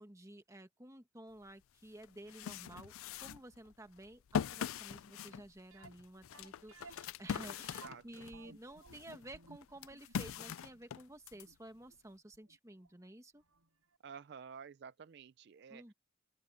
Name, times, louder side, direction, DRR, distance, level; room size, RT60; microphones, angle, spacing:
voice 1, 0.0-2.9 3.2-13.4 15.7-15.9, right 1 dB, 15° right, 1.4 m, -53 dB
sound 1, 1.5-1.6 2.0-8.4 8.8-11.5, left 7 dB, 75° left, 0.4 m, -42 dB
sound 2, 5.7-12.6 12.8-12.9 13.5-13.6 13.9-14.0, right 3 dB, 90° right, 5.9 m, -58 dB
voice 2, 14.0-15.9, right 6 dB, 50° right, 0.3 m, -51 dB
open air
head